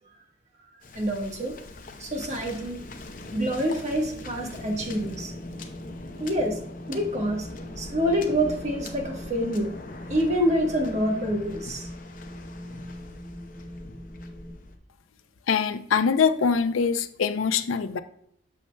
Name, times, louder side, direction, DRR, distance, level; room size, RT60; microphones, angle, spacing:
Waves surf, 0.8-14.8, left 2 dB, 45° left, 0.7 m, -42 dB
voice 1, 0.9-1.6 2.0-2.8 3.3-5.3 6.2-6.6 6.9-7.5 7.8-9.7 10.1-11.9, equal, 35° right, 1 dB, 1.2 m, -26 dB
Wind, 4.5-14.5, equal, 15° left, 1.5 m, -42 dB
voice 2, 15.5-18.0, left 6 dB, 85° left, 11 dB, 0.5 m, -23 dB
8.4 x 6.5 x 2.2 m, 0.70 s
head